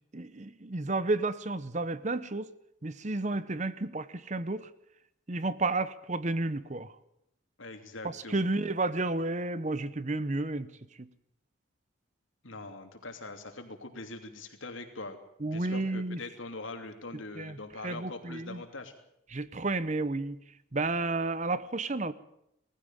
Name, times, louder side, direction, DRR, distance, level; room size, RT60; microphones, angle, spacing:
voice 1, 0.1-2.5 2.8-4.7 5.3-6.9 8.0-10.7 11.0-11.1 15.4-16.2 17.4-17.6 17.8-18.6 19.3-20.4 20.7-22.1, right 2 dB, 35° right, 15 dB, 0.8 m, -31 dB
voice 2, 7.6-8.5 12.4-15.2 15.4-18.9, left 2 dB, 75° left, 6 dB, 2.9 m, -42 dB
19.5 x 15.0 x 9.0 m, 0.78 s
head